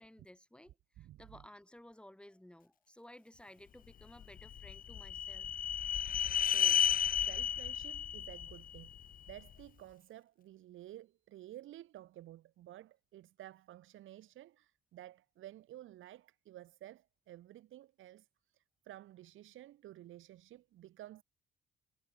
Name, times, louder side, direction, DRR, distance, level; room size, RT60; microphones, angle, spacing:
voice 1, 0.0-5.5, left 1 dB, 5° left, 3.2 m, -56 dB
voice 2, 1.0-1.4 6.5-6.8 7.2-8.9 9.3-21.2, right 13 dB, 80° right, 5.5 m, -53 dB
Shine Sound Effect, 4.2-9.4, left 9 dB, 45° left, 0.6 m, -33 dB
cardioid pair, 90°, 20 cm